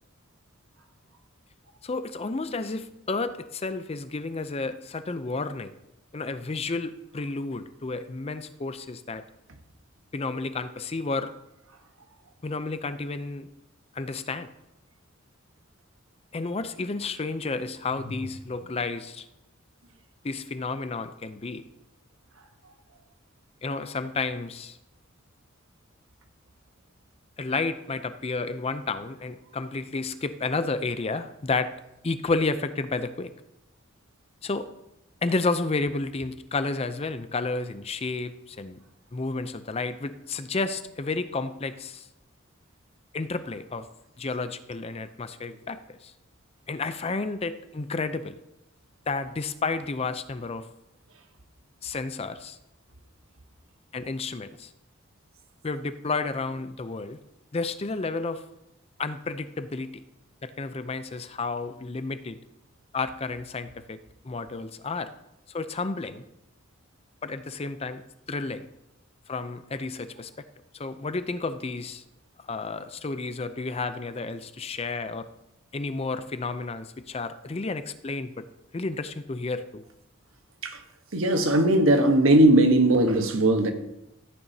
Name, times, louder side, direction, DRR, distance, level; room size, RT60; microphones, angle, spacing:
voice 1, 1.8-5.7 6.1-9.2 10.1-11.3 12.4-13.5 13.9-14.5 16.3-19.3 20.2-21.6 23.6-24.8 27.4-31.7 32.0-33.3 34.4-34.7 35.2-38.8 39.1-42.1 43.1-43.9 44.2-46.1 46.7-48.4 49.1-50.7 51.8-52.6 53.9-54.7 55.6-57.2 57.5-58.4 59.0-60.0 60.4-62.4 62.9-65.1 65.5-66.2 67.2-68.0 68.3-68.7 69.3-70.3 70.7-72.0 72.4-75.3 75.7-78.5 78.7-79.8, left 3 dB, 30° left, 0.5 m, -31 dB
voice 2, 81.1-83.7, right 1 dB, 80° right, 1.2 m, -19 dB
14.0 x 8.9 x 2.8 m
head